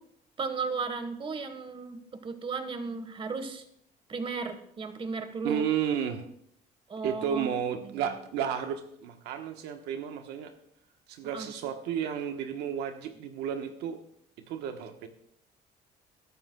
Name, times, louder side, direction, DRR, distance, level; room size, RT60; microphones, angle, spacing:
voice 1, 0.4-3.6 4.1-5.6 6.9-7.5 7.8-8.1 11.3-11.5, right 4 dB, 30° right, 9 dB, 1.4 m, -35 dB
voice 2, 5.4-6.3 7.0-10.5 11.1-14.0 14.5-15.1, right 8 dB, 90° right, 6 dB, 1.2 m, -32 dB
21.0 x 11.5 x 2.3 m, 0.68 s
cardioid pair, 110°, 17 cm